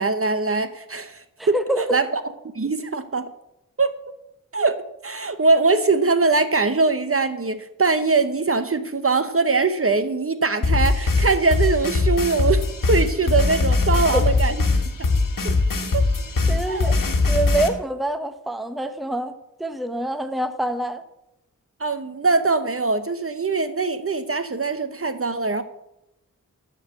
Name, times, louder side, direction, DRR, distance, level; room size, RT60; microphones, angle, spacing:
voice 1, 0.0-2.1 2.5-3.3 3.8-3.9 4.5-14.6 15.0-15.1 15.4-15.5 15.9-16.1 16.7-17.0 21.8-25.6, right 3 dB, 40° right, 0.9 m, -22 dB
voice 2, 1.4-2.0 14.1-14.2 16.5-17.0 17.3-21.0, right 1 dB, ahead, 0.9 m, -26 dB
sound 1, 10.6-17.7, left 3 dB, 75° left, 1.5 m, -21 dB
13.0 x 4.7 x 8.3 m
cardioid pair, 55°, 33 cm